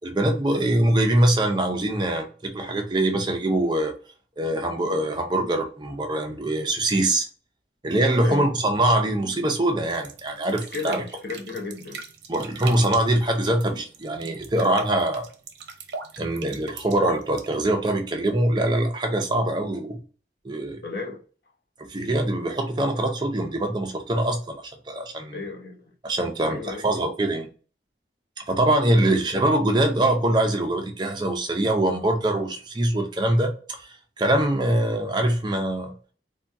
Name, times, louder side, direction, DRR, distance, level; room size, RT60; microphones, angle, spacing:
voice 1, 0.0-3.9 4.4-7.3 7.8-11.0 12.3-15.3 16.2-20.0 20.4-20.8 21.9-25.4 26.0-27.5 28.5-35.9, right 1 dB, 25° right, 0.5 m, -23 dB
sound 1, 9.8-18.0, right 5 dB, 80° right, 0.6 m, -40 dB
voice 2, 10.7-12.1 20.8-21.2 25.3-25.9 26.5-26.8 29.0-29.2, left 4 dB, 60° left, 0.8 m, -34 dB
3.5 x 2.2 x 2.6 m
head